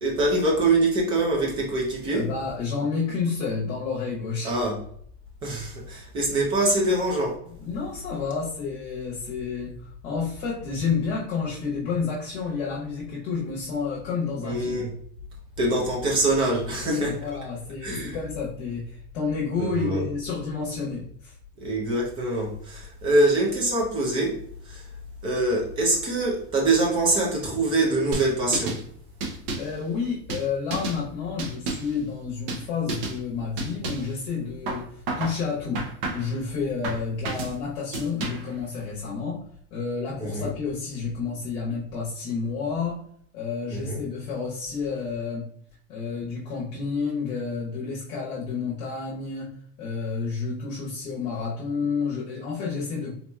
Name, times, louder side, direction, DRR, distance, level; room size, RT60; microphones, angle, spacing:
voice 1, 0.0-2.3 4.4-4.8 5.4-7.4 14.4-14.9 15.6-17.1 17.8-18.2 19.6-20.0 21.6-24.9 25.2-28.8 40.2-40.5 43.7-44.0, right 2 dB, 15° right, 0 dB, 0.5 m, -24 dB
voice 2, 2.1-4.5 7.6-14.9 16.8-21.3 29.2-29.3 29.6-35.9 36.1-39.4 39.7-43.0 43.3-45.5 45.9-53.2, left 5 dB, 45° left, -5 dB, 1.0 m, -30 dB
sound 1, 28.1-28.8 29.2-29.8 30.3-31.0 31.4-32.0 32.5-32.6 32.9-33.2 33.6-34.1 34.7-35.4 35.7-36.4 36.8-37.5 37.9-38.5, right 2 dB, 60° right, 0.9 m, -31 dB
4.0 x 2.9 x 2.2 m, 0.62 s
supercardioid pair, 180°, 32 cm